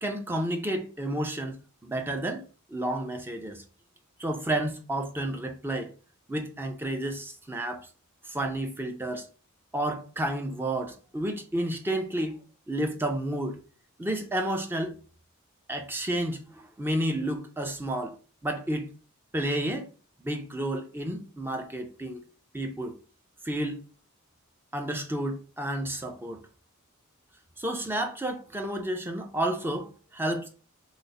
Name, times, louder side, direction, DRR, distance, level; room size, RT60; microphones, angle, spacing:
voice 1, 0.0-3.6 4.2-5.9 6.3-7.9 8.2-9.3 9.7-12.4 12.7-13.6 14.0-14.9 15.7-18.2 18.4-18.9 19.3-19.9 20.2-22.2 22.5-22.9 23.4-23.8 24.7-26.4 27.6-30.5, right 1 dB, 10° right, 0.5 m, -31 dB
3.9 x 2.1 x 4.1 m
head